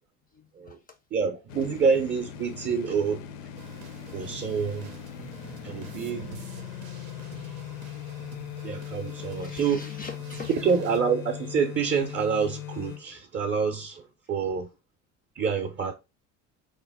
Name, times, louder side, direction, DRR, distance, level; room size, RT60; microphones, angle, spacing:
voice 1, 0.3-1.0 1.6-1.8 5.4-6.0 6.5-6.6 7.2-7.3 7.7-8.3 9.0-10.5, left 5 dB, 25° left, 0.3 m, -46 dB
voice 2, 1.1-3.2 4.1-4.9 5.6-6.4 8.6-9.8 10.5-14.7 15.4-15.9, right 6 dB, 30° right, 0.5 m, -27 dB
sound 1, 1.5-13.0, left 10 dB, 75° left, 0.5 m, -39 dB
sound 2, 3.5-11.0, right 7 dB, 80° right, 0.6 m, -47 dB
2.9 x 2.1 x 3.5 m
hypercardioid pair, 65°, 41 cm